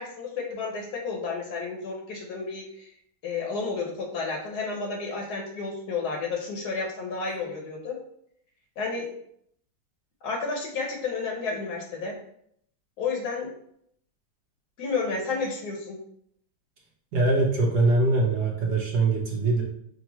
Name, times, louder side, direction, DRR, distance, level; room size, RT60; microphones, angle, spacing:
voice 1, 0.0-2.9 3.2-8.0 8.8-9.1 10.2-12.2 13.0-13.5 14.8-16.0, left 4 dB, 65° left, 0 dB, 1.2 m, -31 dB
voice 2, 17.1-19.6, right 2 dB, 65° right, -1 dB, 1.3 m, -22 dB
5.2 x 2.4 x 3.0 m, 0.69 s
omnidirectional pair, 2.0 m